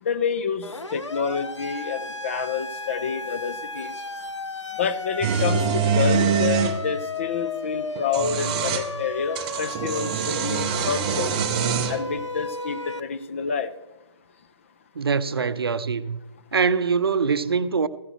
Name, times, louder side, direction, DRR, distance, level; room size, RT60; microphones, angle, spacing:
voice 1, 0.0-3.9 4.8-11.3 11.9-13.7, left 6 dB, 25° left, 0.5 m, -28 dB
Siren, 0.6-13.0, left 2 dB, 90° left, 0.8 m, -33 dB
sound 1, 5.2-6.8 7.9-8.9 9.3-12.0, right 6 dB, 15° right, 0.6 m, -24 dB
voice 2, 14.9-16.2 16.5-17.9, right 5 dB, 60° right, 0.6 m, -23 dB
15.0 x 11.5 x 3.0 m
figure-of-eight pair, 145°, 15 cm